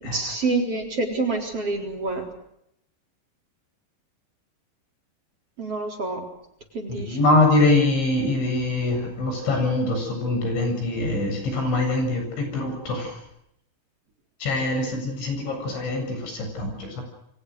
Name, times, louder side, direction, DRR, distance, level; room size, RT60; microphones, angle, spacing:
voice 1, 0.1-2.3 5.6-6.3 6.7-7.2, right 3 dB, 35° right, 3 dB, 4.7 m, -27 dB
voice 2, 6.9-13.2 14.4-17.0, left 2 dB, 85° left, 4 dB, 10.0 m, -23 dB
29.0 x 24.0 x 6.5 m, 0.77 s
omnidirectional pair, 5.2 m